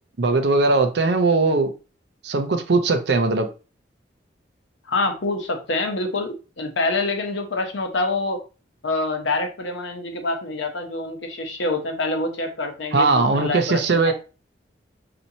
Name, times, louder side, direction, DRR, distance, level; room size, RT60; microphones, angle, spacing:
voice 1, 0.2-1.7 2.2-3.5 12.9-14.1, right 3 dB, 65° right, 0.6 m, -19 dB
voice 2, 4.9-8.4 8.8-14.1, left 2 dB, 90° left, 0.8 m, -26 dB
4.2 x 2.8 x 2.7 m
head